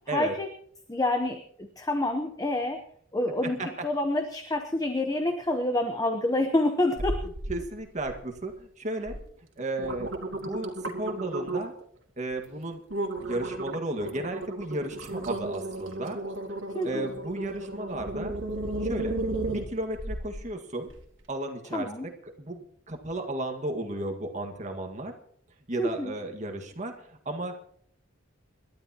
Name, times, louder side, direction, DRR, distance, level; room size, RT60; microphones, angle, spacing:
voice 1, 0.1-0.5 0.9-2.8 3.1-7.3 16.7-17.1 21.7-22.1 25.8-26.1, left 1 dB, 20° left, 6 dB, 0.9 m, -28 dB
sound 1, 7.0-7.6 8.0-8.5 9.1-9.2 9.6-11.8 12.3-12.5 12.9-20.4 20.9-21.0, right 2 dB, 75° right, 2.2 m, -34 dB
voice 2, 7.5-9.2 9.6-11.7 12.2-12.8 13.2-16.2 16.8-18.3 18.8-19.2 19.5-20.9 21.3-22.1 22.4-25.1 25.7-27.6, right 1 dB, 40° right, 4 dB, 1.8 m, -34 dB
28.0 x 12.0 x 2.9 m, 0.63 s
head